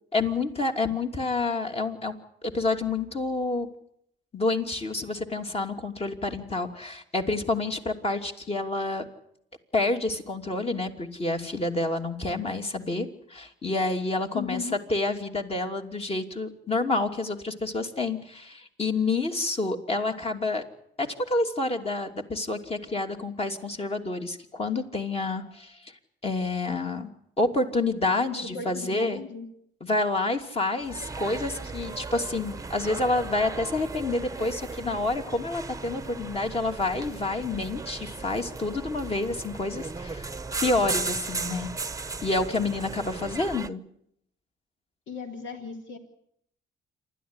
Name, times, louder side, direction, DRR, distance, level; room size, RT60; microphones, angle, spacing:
voice 1, 0.1-2.2 2.4-3.7 4.3-9.0 9.7-14.6 14.9-20.6 21.0-25.8 26.2-27.1 27.4-29.2 29.8-40.3 40.6-41.7 42.2-43.8, left 2 dB, 30° left, 4 dB, 3.0 m, -28 dB
voice 2, 14.3-14.8 28.3-29.5 45.1-46.0, left 5 dB, 70° left, 4 dB, 3.3 m, -36 dB
sound 1, 30.8-43.7, right 4 dB, 15° right, 1.0 m, -36 dB
27.5 x 13.0 x 9.9 m, 0.72 s
cardioid pair, 90°, 20 cm